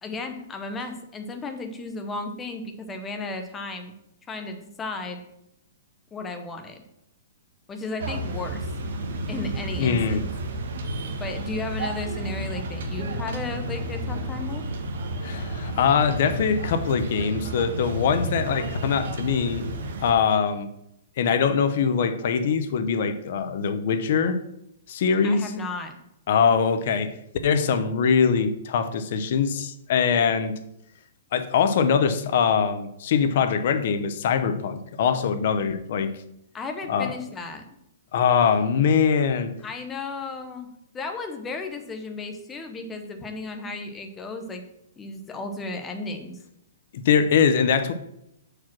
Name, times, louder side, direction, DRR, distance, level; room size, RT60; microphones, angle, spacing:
voice 1, 0.0-3.9 4.3-5.2 6.1-6.8 7.7-8.7 9.3-10.3 11.2-14.6 25.2-26.0 36.5-37.7 39.6-44.6 45.0-46.3, left 3 dB, 10° left, 5 dB, 0.7 m, -34 dB
sound 1, 8.0-20.1, right 1 dB, 55° right, 1.2 m, -31 dB
voice 2, 9.8-10.3 15.2-20.7 21.2-24.4 24.9-25.5 26.3-27.2 27.4-30.6 31.3-36.1 36.9-37.1 38.1-39.5 47.0-47.9, left 6 dB, 45° left, 10 dB, 0.7 m, -22 dB
6.0 x 4.9 x 5.9 m, 0.80 s
hypercardioid pair, 175°, 0 cm